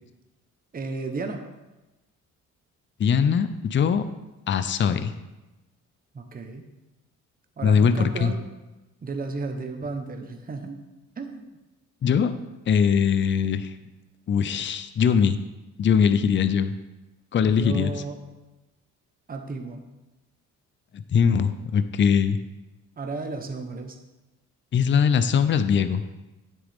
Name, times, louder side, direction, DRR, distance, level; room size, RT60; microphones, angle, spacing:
voice 1, 0.7-1.4 6.1-6.6 7.6-8.4 9.0-10.8 11.2-11.5 17.4-18.2 19.3-19.9 23.0-24.0, right 3 dB, 30° right, 5 dB, 1.0 m, -33 dB
voice 2, 3.0-4.1 4.5-5.1 7.6-8.3 12.0-12.3 12.7-13.7 14.3-15.4 15.8-16.7 17.3-17.9 20.9-22.4 24.7-26.0, left 7 dB, 40° left, 11 dB, 0.6 m, -21 dB
9.6 x 7.7 x 3.5 m, 1.1 s
cardioid pair, 90°, 30 cm